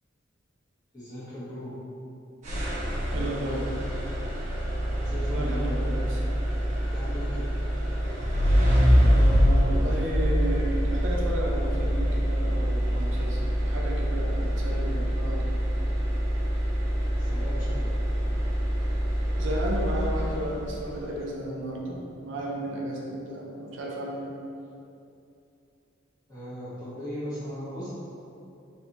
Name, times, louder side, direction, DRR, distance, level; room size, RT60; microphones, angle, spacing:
voice 1, 0.9-1.8 4.9-5.9 6.9-7.5 17.1-17.9 26.3-27.9, equal, 20° left, -11 dB, 1.3 m, -38 dB
sound 1, 2.4-20.7, equal, 40° right, 1.1 m, -25 dB
voice 2, 3.1-3.7 5.3-6.2 9.0-15.5 19.4-24.3, right 1 dB, 70° right, -2 dB, 0.6 m, -33 dB
4.1 x 3.3 x 2.9 m, 2.6 s
head